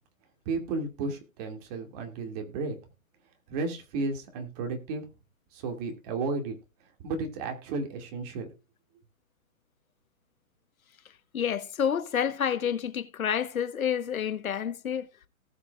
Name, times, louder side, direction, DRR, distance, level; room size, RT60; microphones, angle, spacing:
voice 1, 0.5-2.8 3.5-5.1 5.5-6.6 7.0-8.5, right 3 dB, 30° right, 2.4 m, -33 dB
voice 2, 11.3-15.1, left 8 dB, 80° left, 1.3 m, -29 dB
18.5 x 6.3 x 2.5 m
hypercardioid pair, 155°, 41 cm